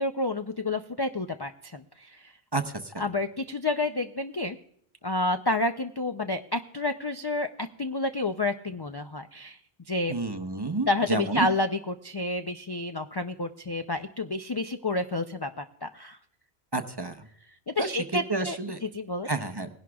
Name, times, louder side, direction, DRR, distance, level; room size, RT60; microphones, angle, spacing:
voice 1, 0.0-2.3 3.0-4.6 5.0-9.6 9.9-10.1 10.8-16.2 17.7-19.3, left 2 dB, 35° left, 7 dB, 0.4 m, -30 dB
voice 2, 2.5-3.0 10.1-11.5 16.7-17.2 17.8-17.9 18.3-18.8 19.2-19.7, right 2 dB, 25° right, 7 dB, 0.7 m, -30 dB
20.0 x 11.0 x 2.3 m, 0.69 s
omnidirectional pair, 1.1 m